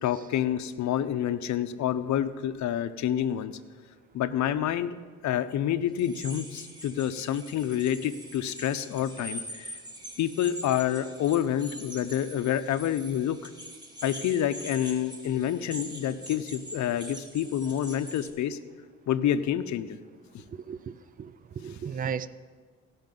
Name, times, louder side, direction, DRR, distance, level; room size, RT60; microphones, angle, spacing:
voice 1, 0.0-3.5 4.1-4.9 5.2-9.7 10.2-13.4 14.0-18.6 19.1-20.0, left 10 dB, 70° left, 13 dB, 0.7 m, -28 dB
sound 1, 6.0-18.3, equal, 15° right, 1.7 m, -44 dB
voice 2, 20.5-20.9 21.2-22.3, right 7 dB, 30° right, 15 dB, 0.4 m, -35 dB
16.5 x 5.8 x 5.3 m, 1.5 s
cardioid pair, 90°, 30 cm